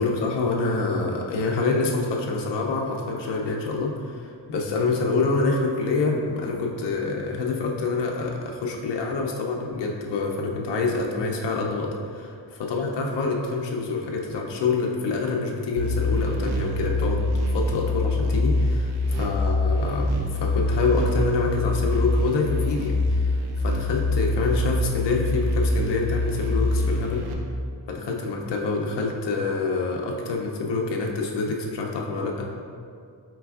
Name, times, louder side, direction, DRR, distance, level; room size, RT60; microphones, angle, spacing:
voice 1, 0.0-12.3 12.7-17.2 17.5-18.9 19.2-27.2 27.9-32.5, left 3 dB, 75° left, 0 dB, 0.5 m, -26 dB
sound 1, 15.8-27.3, left 2 dB, 65° right, 0.5 m, -24 dB
4.6 x 3.3 x 2.3 m, 2.3 s
wide cardioid pair, 140°, 43 cm